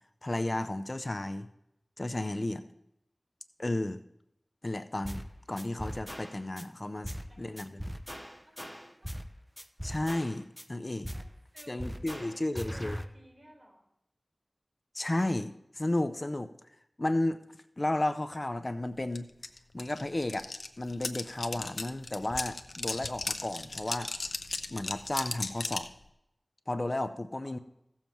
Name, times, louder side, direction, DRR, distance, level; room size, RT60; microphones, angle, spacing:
voice 1, 0.2-1.5 2.0-2.6 3.6-4.0 4.6-7.8 9.8-11.1 11.7-13.0 14.9-16.5 17.0-17.4 17.8-19.3 19.7-20.5 20.8-24.1 24.7-25.9 26.7-27.6, left 1 dB, 45° left, 10 dB, 0.6 m, -33 dB
voice 2, 2.3-2.7 7.1-7.8 8.5-9.3 11.1-13.9 27.4-27.5, equal, 35° right, 0 dB, 4.2 m, -57 dB
sound 1, 5.0-5.3 5.6-6.6 7.0-7.3 7.6-9.3 9.6-10.6 11.0-11.3 11.6-13.0, equal, 5° right, 0.8 m, -40 dB
sound 2, 19.1-19.2 19.4-25.9, left 3 dB, 90° left, 0.7 m, -36 dB
16.0 x 7.2 x 4.5 m, 0.80 s
wide cardioid pair, 45°, 0 cm